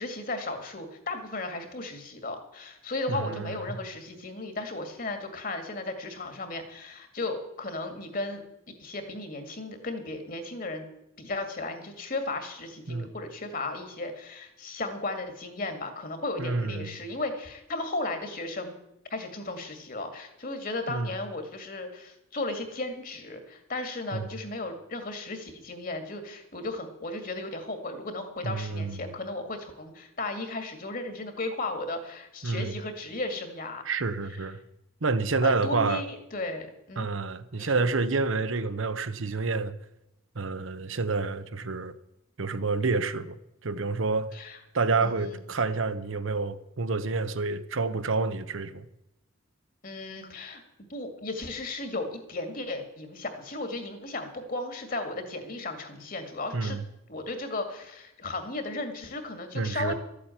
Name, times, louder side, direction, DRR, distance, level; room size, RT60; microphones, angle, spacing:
voice 1, 0.0-8.4 8.8-10.8 11.2-18.7 19.1-33.8 35.4-37.1 37.6-37.8 44.3-44.6 45.0-45.4 49.8-50.6 50.9-56.8 57.1-59.9, left 2 dB, 40° left, 2.1 m, -35 dB
voice 2, 3.1-3.8 12.9-13.1 16.4-17.0 20.9-21.1 24.1-24.3 28.4-29.1 32.4-32.7 33.8-34.6 35.0-36.0 37.0-39.7 40.3-41.9 42.4-43.4 43.6-44.3 44.7-48.9 56.5-56.8 59.5-59.9, right 3 dB, 70° right, 0.9 m, -28 dB
13.0 x 8.6 x 9.0 m
head